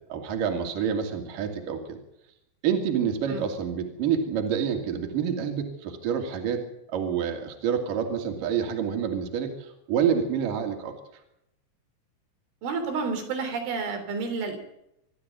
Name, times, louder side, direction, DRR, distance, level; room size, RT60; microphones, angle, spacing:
voice 1, 0.0-2.0 2.6-6.6 6.9-10.9, right 7 dB, 50° right, 4 dB, 3.8 m, -28 dB
voice 2, 12.6-14.6, right 4 dB, 90° right, 6 dB, 6.0 m, -30 dB
25.0 x 13.0 x 8.2 m, 0.82 s
omnidirectional pair, 5.3 m